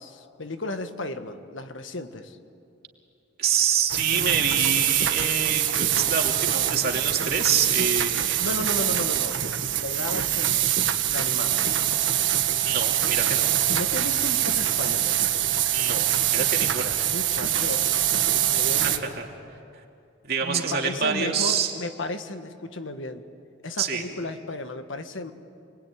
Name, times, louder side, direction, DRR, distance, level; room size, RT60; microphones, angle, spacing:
voice 1, 0.0-2.4 8.4-9.4 9.8-10.7 11.1-11.6 13.7-15.3 17.0-17.9 18.3-19.2 20.4-23.3 23.6-25.3, left 2 dB, 80° left, 8 dB, 1.5 m, -34 dB
voice 2, 3.4-8.4 12.6-13.5 15.7-17.0 18.8-19.2 20.2-21.7 23.8-24.0, right 7 dB, 55° right, 1 dB, 2.8 m, -26 dB
sound 1, 3.9-19.0, right 11 dB, 75° right, 1.5 m, -24 dB
28.5 x 22.0 x 9.4 m, 2.6 s
head